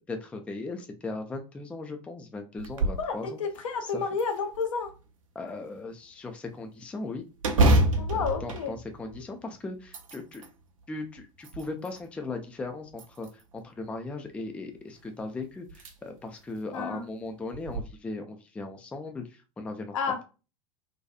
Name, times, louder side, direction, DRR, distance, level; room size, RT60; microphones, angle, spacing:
voice 1, 0.1-3.4 3.9-4.0 5.4-7.2 8.1-10.4 10.9-19.9, left 3 dB, 5° left, 6 dB, 0.3 m, -38 dB
sound 1, 2.6-3.1 3.5-3.6 4.2-5.0 7.4-9.4 9.8-10.5 11.2-12.0 12.9-13.6 15.1-15.2 15.7-15.9 16.4-16.5 17.5-17.8, right 1 dB, 70° right, 0.6 m, -27 dB
voice 2, 3.0-4.9 8.0-8.7 16.7-17.1 19.9-20.2, left 5 dB, 65° left, 6 dB, 0.6 m, -30 dB
2.6 x 2.3 x 2.3 m, 0.32 s
figure-of-eight pair, 80°, 18 cm